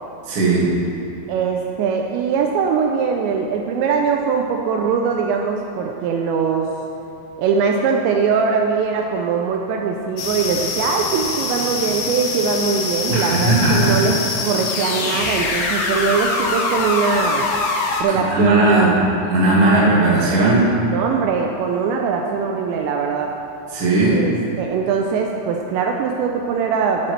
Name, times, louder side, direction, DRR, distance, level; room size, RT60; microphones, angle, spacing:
voice 1, 0.3-0.7 13.1-14.0 18.1-19.0 19.3-20.7 23.7-24.2, right 2 dB, 40° right, -6 dB, 2.0 m, -17 dB
voice 2, 1.3-6.7 7.4-17.5 18.0-19.0 19.6-19.8 20.9-23.3 24.1-27.1, right 5 dB, 80° right, 2 dB, 2.7 m, -21 dB
sound 1, 10.2-18.0, left 3 dB, 75° left, 2.3 m, -24 dB
11.5 x 11.5 x 3.3 m, 2.7 s
omnidirectional pair, 5.4 m